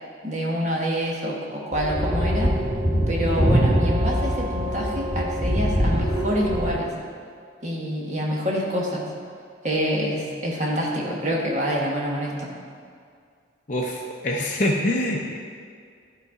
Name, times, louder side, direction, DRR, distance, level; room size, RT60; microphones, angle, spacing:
voice 1, 0.2-2.5 3.1-6.9 7.6-9.1 9.6-12.5, equal, 40° right, -3 dB, 1.2 m, -26 dB
sound 1, 1.7-6.7, equal, 20° left, 1.2 m, -23 dB
voice 2, 13.7-15.5, left 1 dB, 40° left, -2 dB, 0.6 m, -25 dB
11.5 x 4.0 x 4.7 m, 2.2 s
head